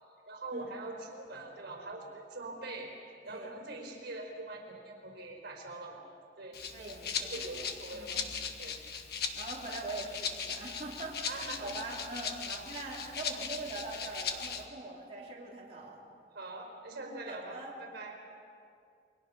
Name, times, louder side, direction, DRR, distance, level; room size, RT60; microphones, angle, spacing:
voice 1, 0.3-2.9 3.2-6.0 6.4-6.6 7.3-8.2 8.6-8.8 11.2-11.7 12.5-12.7 16.3-18.1, right 2 dB, 65° right, 1 dB, 4.4 m, -43 dB
voice 2, 3.3-3.6 6.7-8.2 9.3-16.1 17.3-17.7, right 2 dB, 35° right, -6 dB, 3.5 m, -43 dB
Rattle (instrument), 6.5-14.6, left 6 dB, 65° left, 1.6 m, -39 dB
28.5 x 23.5 x 5.5 m, 2.5 s
head